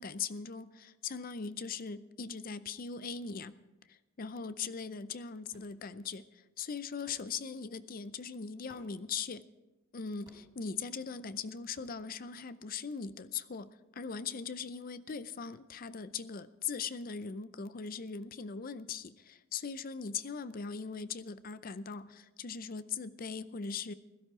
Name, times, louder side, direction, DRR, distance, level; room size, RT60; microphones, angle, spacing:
voice 1, 0.0-3.6 3.9-9.4 9.9-23.9, left 5 dB, 45° left, 14 dB, 0.6 m, -40 dB
sound 1, 5.5-5.8 7.1-7.3 8.7-9.0 10.2-10.6 11.7-12.0, equal, 20° right, 4.9 m, -59 dB
16.5 x 12.5 x 4.9 m, 1.0 s
head